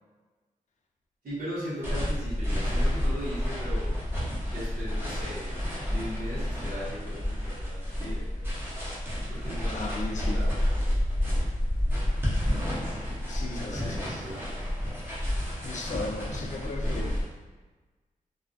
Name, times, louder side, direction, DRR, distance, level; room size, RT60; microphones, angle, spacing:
voice 1, 1.2-3.9 4.5-5.5 5.9-8.5 9.3-10.6 13.5-14.4, equal, 80° right, -10 dB, 1.0 m, -38 dB
sound 1, 1.8-17.2, left 1 dB, 15° right, 0.6 m, -30 dB
voice 2, 9.7-10.4 13.3-14.3 15.6-17.2, left 3 dB, 55° left, 1 dB, 0.4 m, -36 dB
2.3 x 2.2 x 2.5 m, 1.3 s
wide cardioid pair, 140°, 14 cm